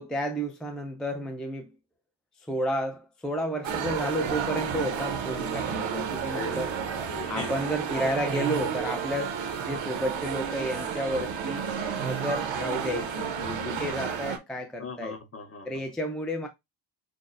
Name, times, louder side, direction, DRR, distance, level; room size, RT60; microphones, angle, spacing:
voice 1, 0.0-1.7 2.4-6.7 7.3-11.6 12.0-15.1 15.6-16.5, equal, ahead, 0.4 m, -31 dB
sound 1, 3.6-14.4, right 7 dB, 85° right, 0.8 m, -31 dB
voice 2, 6.2-7.5 14.8-15.9, left 4 dB, 30° left, 0.7 m, -40 dB
6.2 x 2.1 x 2.4 m
wide cardioid pair, 160°, 45 cm